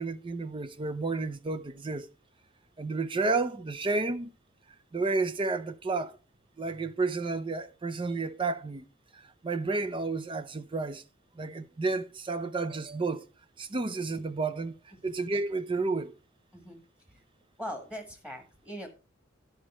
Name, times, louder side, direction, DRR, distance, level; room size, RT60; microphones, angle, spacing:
voice 1, 0.0-2.1 2.8-4.3 4.9-6.2 6.6-8.8 9.1-11.0 11.4-13.2 13.6-14.7 15.0-16.1, right 3 dB, 25° right, 0.5 m, -31 dB
voice 2, 16.5-16.8 17.1-17.2 17.6-18.9, equal, 5° right, 1.6 m, -41 dB
11.5 x 5.1 x 4.2 m
head